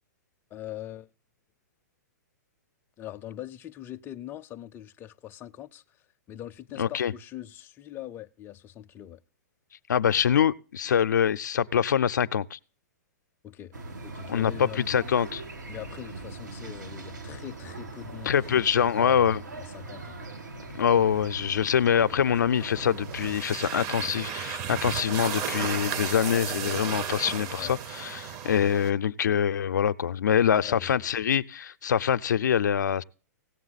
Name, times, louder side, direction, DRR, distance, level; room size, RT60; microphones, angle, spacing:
voice 1, 0.5-1.1 3.0-6.0 6.3-9.2 13.4-13.7 14.0-14.9 15.7-20.2 27.5-27.8 30.6-31.1, left 12 dB, 20° left, 0.5 m, -42 dB
voice 2, 6.8-7.1 9.9-12.6 14.3-15.4 18.3-19.4 20.7-33.0, left 8 dB, 85° left, 0.5 m, -24 dB
sound 1, 13.7-23.4, right 2 dB, 90° right, 1.9 m, -41 dB
sound 2, 22.5-28.9, right 8 dB, 35° right, 0.7 m, -34 dB
17.0 x 7.4 x 4.0 m
hypercardioid pair, 130°, 9 cm